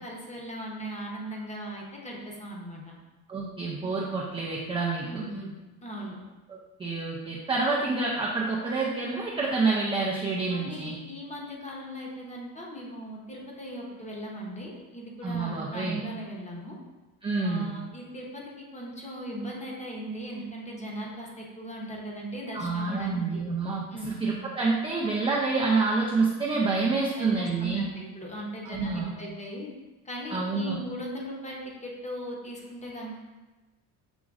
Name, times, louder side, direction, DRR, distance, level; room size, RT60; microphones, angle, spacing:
voice 1, 0.0-2.9 5.1-6.2 10.5-16.8 17.4-23.4 23.9-24.2 27.2-29.7 30.0-33.2, equal, 20° left, -2 dB, 0.8 m, -38 dB
voice 2, 3.3-5.2 6.5-11.0 15.2-16.0 17.2-17.7 22.5-27.8 28.7-29.1 30.3-30.8, right 3 dB, 15° right, -4 dB, 0.3 m, -28 dB
6.0 x 3.0 x 2.4 m, 1.2 s
cardioid pair, 130°, 39 cm